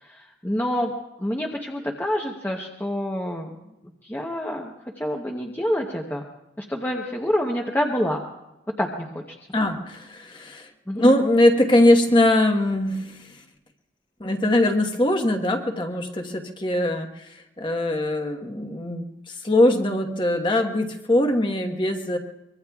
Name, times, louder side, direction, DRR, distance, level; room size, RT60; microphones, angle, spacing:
voice 1, 0.1-0.9 1.2-3.5 4.0-4.7 5.0-6.2 6.6-8.2 8.8-9.2 10.9-11.0, equal, 10° left, 0 dB, 0.9 m, -27 dB
voice 2, 9.5-10.7 11.0-13.4 14.2-22.2, left 1 dB, 25° left, 5 dB, 1.2 m, -21 dB
24.0 x 22.5 x 2.4 m, 0.92 s
head